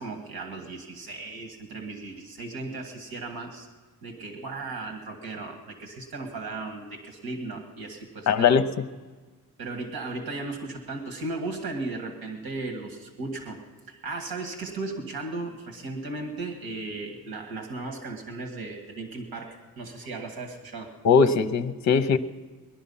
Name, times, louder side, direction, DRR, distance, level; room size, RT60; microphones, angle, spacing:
voice 1, 0.0-3.7 4.0-8.6 9.6-13.6 13.9-20.9, right 3 dB, 80° right, 4 dB, 2.0 m, -36 dB
voice 2, 8.3-8.8 21.0-22.2, left 6 dB, 50° left, 10 dB, 0.8 m, -20 dB
20.0 x 11.5 x 5.6 m, 1.4 s
wide cardioid pair, 170°, 36 cm